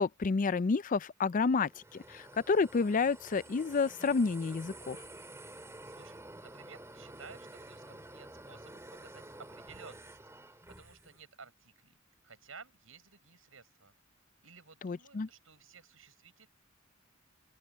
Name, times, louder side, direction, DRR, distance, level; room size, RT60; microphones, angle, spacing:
voice 1, 0.0-5.0 14.8-15.3, left 4 dB, 40° left, 0.4 m, -30 dB
sound 1, 1.5-11.2, right 1 dB, 15° right, 2.6 m, -50 dB
voice 2, 5.9-10.2 10.8-12.0 12.2-13.9 14.4-16.5, right 5 dB, 85° right, 6.6 m, -55 dB
open air
head